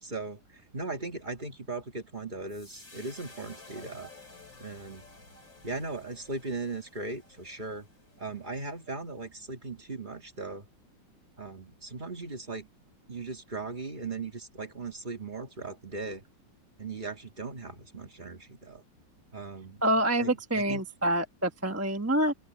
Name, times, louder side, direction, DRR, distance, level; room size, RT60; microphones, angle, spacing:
voice 1, 0.0-4.1 4.6-5.0 5.6-7.9 8.2-10.7 11.4-12.7 13.1-16.2 16.8-18.8 19.3-19.8 20.2-20.8, right 3 dB, 25° right, 1.9 m, -38 dB
sound 1, 2.5-8.9, left 3 dB, 80° left, 5.6 m, -53 dB
voice 2, 19.8-22.3, right 1 dB, 10° right, 0.9 m, -27 dB
open air
omnidirectional pair, 2.0 m